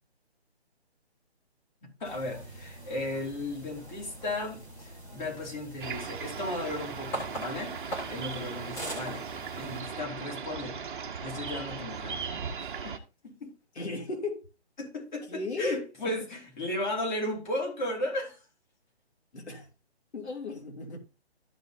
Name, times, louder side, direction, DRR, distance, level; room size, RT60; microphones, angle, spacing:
voice 1, 1.8-7.7 8.1-9.3 9.5-10.8 11.2-12.2 12.6-12.9 13.4-13.5 14.8-18.4, left 1 dB, 45° left, 4.1 m, -35 dB
sound 1, 2.0-9.8, right 1 dB, 5° left, 1.4 m, -42 dB
sound 2, 5.8-13.0, right 6 dB, 50° right, 1.2 m, -38 dB
voice 2, 13.7-14.5 15.3-16.1 19.3-19.7 20.1-21.0, left 3 dB, 80° left, 2.7 m, -36 dB
13.5 x 5.7 x 2.7 m
hypercardioid pair, 165°, 33 cm